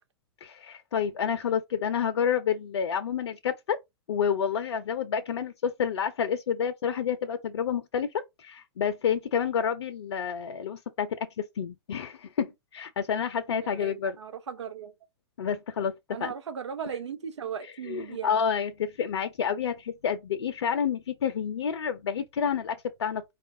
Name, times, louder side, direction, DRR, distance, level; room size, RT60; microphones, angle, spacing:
voice 1, 0.4-3.8 4.1-14.2 15.4-15.9 16.2-16.3 17.9-23.2, left 7 dB, 75° left, 0.6 m, -29 dB
voice 2, 13.6-14.9 16.1-18.4, right 7 dB, 80° right, 1.2 m, -37 dB
4.7 x 2.4 x 3.8 m
hypercardioid pair, 115°, 14 cm